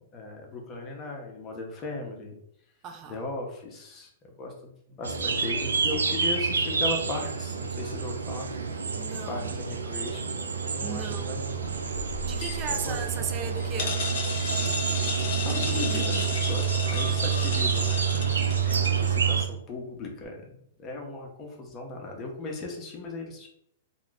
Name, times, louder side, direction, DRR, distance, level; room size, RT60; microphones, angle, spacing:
voice 1, 0.1-2.3 3.1-8.5 9.3-10.3 10.6-11.7 12.7-13.2 14.9-15.1 15.4-20.4 20.8-23.5, left 2 dB, 25° left, 0.8 m, -37 dB
voice 2, 2.8-3.2 8.9-9.5 10.8-11.4 12.3-14.1 18.9-19.2, right 6 dB, 30° right, 0.5 m, -37 dB
sound 1, 5.0-19.4, right 6 dB, 90° right, 0.4 m, -28 dB
sound 2, 11.6-19.1, left 4 dB, 65° left, 0.7 m, -35 dB
2.3 x 2.3 x 3.9 m
hypercardioid pair, 125°, 0 cm